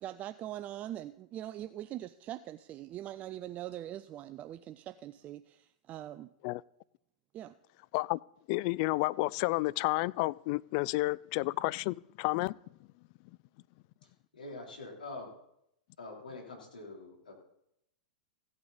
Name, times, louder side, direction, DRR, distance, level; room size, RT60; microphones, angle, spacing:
voice 1, 0.0-6.3 7.3-7.5, right 12 dB, 35° right, 11 dB, 0.5 m, -42 dB
voice 2, 8.5-12.6, left 21 dB, 50° left, 22 dB, 0.3 m, -31 dB
voice 3, 14.3-15.3 16.0-17.4, left 2 dB, 90° left, 0 dB, 3.5 m, -45 dB
16.0 x 8.7 x 4.1 m, 0.78 s
hypercardioid pair, 110°, 4 cm